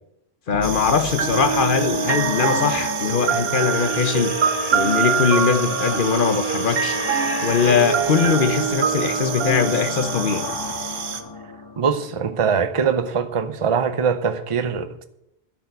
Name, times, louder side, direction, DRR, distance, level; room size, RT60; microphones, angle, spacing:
voice 1, 0.5-4.3 4.7-7.0 7.4-10.5, left 6 dB, 55° left, 0.9 m, -21 dB
sound 1, 0.5-12.6, left 4 dB, 30° left, 0.5 m, -32 dB
sound 2, 0.6-11.2, right 7 dB, 85° right, 1.2 m, -32 dB
sound 3, 1.2-11.0, right 7 dB, 65° right, 1.1 m, -25 dB
voice 2, 11.8-15.0, right 6 dB, 35° right, 0.7 m, -22 dB
10.5 x 6.6 x 8.2 m
omnidirectional pair, 1.1 m